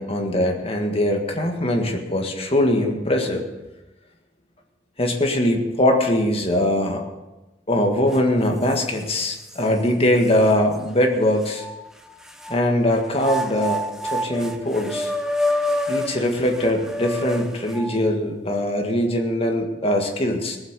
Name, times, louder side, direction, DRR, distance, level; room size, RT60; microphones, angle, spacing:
voice 1, 0.0-3.4 5.0-7.0 7.7-11.7 12.5-15.1 15.9-20.6, left 1 dB, 30° left, 2 dB, 1.8 m, -21 dB
sound 1, 8.1-8.2 8.7-9.6 10.2-10.3 11.4-12.6 13.1-18.1, left 1 dB, 5° right, 0.8 m, -28 dB
18.0 x 7.7 x 6.8 m, 1.1 s
head